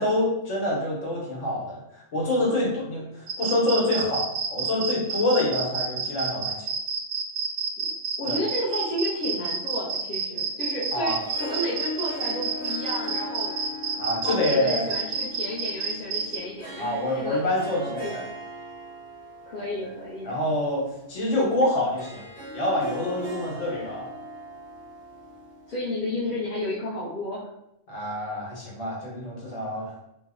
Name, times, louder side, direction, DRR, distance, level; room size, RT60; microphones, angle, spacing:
voice 1, 0.0-6.7 8.3-8.4 10.9-11.2 14.0-14.9 16.8-18.2 20.2-22.2 22.5-24.1 27.9-30.0, left 1 dB, 80° left, -4 dB, 1.3 m, -26 dB
sound 1, 3.3-16.4, right 5 dB, 60° right, 0.7 m, -29 dB
voice 2, 8.2-13.6 14.2-17.4 17.8-18.2 19.4-20.4 25.7-27.5, left 1 dB, 50° left, -8 dB, 0.8 m, -32 dB
Harp, 10.9-26.2, left 1 dB, 10° left, 0.5 m, -40 dB
3.1 x 2.0 x 3.5 m, 0.84 s
omnidirectional pair, 1.3 m